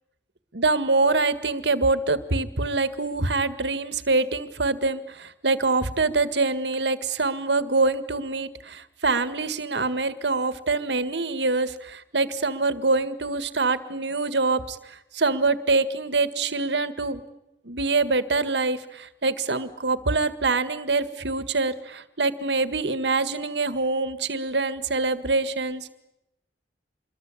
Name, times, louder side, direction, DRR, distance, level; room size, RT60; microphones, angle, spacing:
voice 1, 0.5-17.2 17.6-25.9, right 3 dB, 85° right, 12 dB, 1.8 m, -25 dB
27.0 x 23.0 x 8.6 m, 0.88 s
head